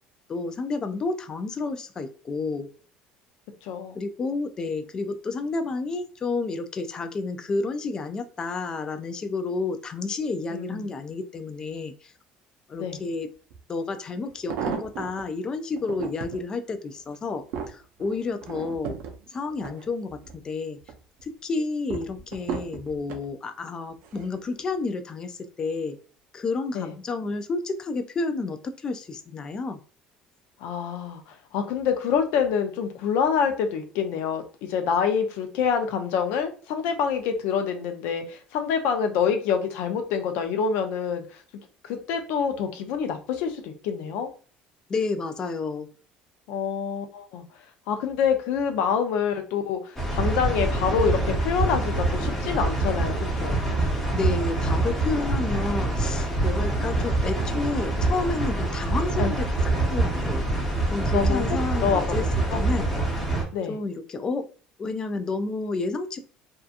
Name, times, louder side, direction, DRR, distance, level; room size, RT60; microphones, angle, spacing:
voice 1, 0.3-2.7 3.9-12.1 12.7-13.3 13.7-19.0 19.3-20.8 21.2-26.0 26.3-29.8 44.9-45.9 54.1-60.4 60.9-62.3 62.5-62.9 63.7-64.5 64.8-66.2, left 3 dB, 25° left, 9 dB, 0.3 m, -30 dB
voice 2, 3.6-4.0 10.5-10.9 12.8-13.0 26.7-26.9 30.6-41.2 41.8-44.3 46.5-47.4 47.9-53.6 59.2-59.4 61.1-61.4 61.8-62.7 63.5-63.8, left 7 dB, 75° left, 6 dB, 0.5 m, -26 dB
sound 1, 13.5-13.6 14.2-15.2 15.7-16.4 17.0-20.4 20.8-21.2 21.9-23.3 24.0-24.4 24.7-24.8, right 7 dB, 75° right, 0.5 m, -35 dB
sound 2, 50.0-63.4, right 2 dB, 5° left, 0.8 m, -25 dB
2.7 x 2.3 x 2.5 m, 0.39 s
cardioid pair, 145°, 3 cm